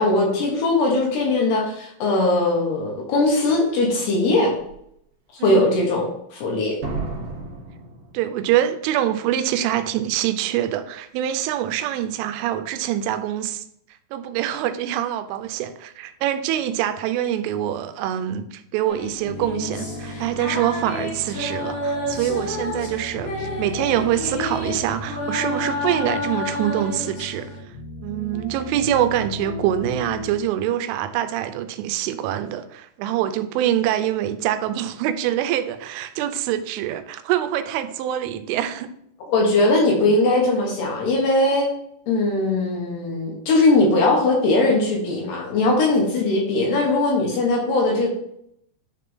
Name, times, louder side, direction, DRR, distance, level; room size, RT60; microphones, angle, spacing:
voice 1, 0.0-4.5 5.4-6.8 39.3-41.7 42.1-48.1, left 2 dB, 65° left, -1 dB, 3.1 m, -20 dB
Slam, 3.7-3.8 4.4-4.7 6.8-8.7 9.0-9.1, right 3 dB, 55° right, 3.6 m, -33 dB
voice 2, 8.1-13.6 14.1-27.5 28.0-38.9, right 11 dB, 85° right, 10 dB, 3.0 m, -25 dB
sound 1, 18.9-27.6, left 2 dB, 80° left, 5.9 m, -30 dB
sound 2, 19.2-30.4, left 1 dB, 50° left, 2.4 m, -36 dB
10.0 x 4.2 x 3.6 m, 0.71 s
omnidirectional pair, 5.6 m